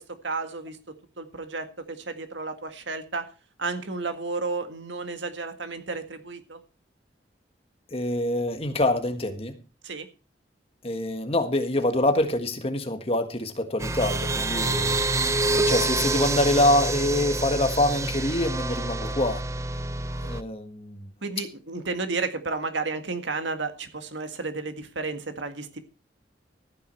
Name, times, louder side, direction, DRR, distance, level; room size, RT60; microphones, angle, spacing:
voice 1, 0.0-3.3 3.6-6.6 9.8-10.1 21.2-25.8, right 3 dB, 80° right, 7 dB, 1.8 m, -32 dB
voice 2, 7.9-9.6 10.8-15.2 15.5-19.4 20.2-21.1, left 1 dB, 30° left, 7 dB, 1.5 m, -25 dB
sound 1, 13.8-20.4, right 2 dB, 15° right, 0.5 m, -27 dB
14.0 x 9.6 x 4.6 m, 0.33 s
head